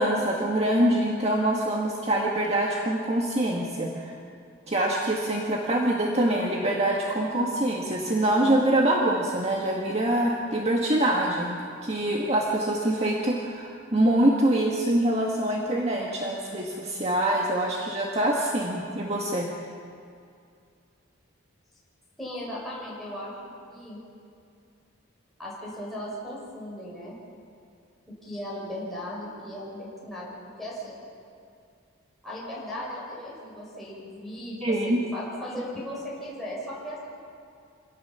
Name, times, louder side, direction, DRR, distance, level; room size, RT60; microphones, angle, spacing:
voice 1, 0.0-4.1 4.7-19.5 34.6-35.0, right 1 dB, 30° right, -1 dB, 1.7 m, -25 dB
voice 2, 22.2-23.4 23.7-24.0 25.4-27.2 28.2-31.0 32.2-37.0, left 1 dB, ahead, -7 dB, 5.9 m, -37 dB
26.5 x 18.0 x 7.0 m, 2.4 s
head